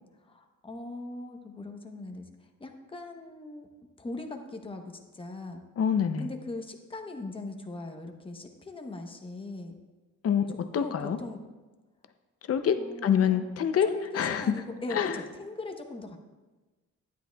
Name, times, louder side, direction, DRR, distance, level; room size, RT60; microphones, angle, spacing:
voice 1, 0.2-3.7 4.0-5.6 6.2-9.8 10.8-11.4 12.8-13.5 13.8-16.2, left 2 dB, 15° left, 4 dB, 0.8 m, -40 dB
voice 2, 5.8-6.3 10.2-10.4 10.7-11.2 12.5-13.9 14.1-14.6 14.9-15.2, left 8 dB, 50° left, 9 dB, 0.6 m, -25 dB
12.0 x 10.0 x 2.3 m, 1.2 s
cardioid pair, 140°, 31 cm